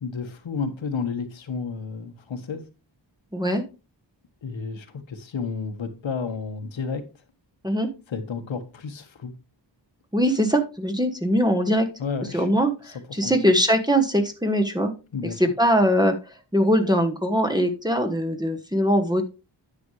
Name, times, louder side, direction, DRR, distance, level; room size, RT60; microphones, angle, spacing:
voice 1, 0.0-2.6 4.4-7.0 8.1-9.3 12.0-12.5 12.8-13.4 15.1-15.4, left 5 dB, 90° left, 1.4 m, -31 dB
voice 2, 3.3-3.6 7.6-7.9 10.1-11.9 12.3-12.7 13.1-14.9 15.4-16.1 16.5-19.2, equal, 10° right, 1.1 m, -21 dB
10.0 x 7.0 x 3.2 m
wide cardioid pair, 130°, 44 cm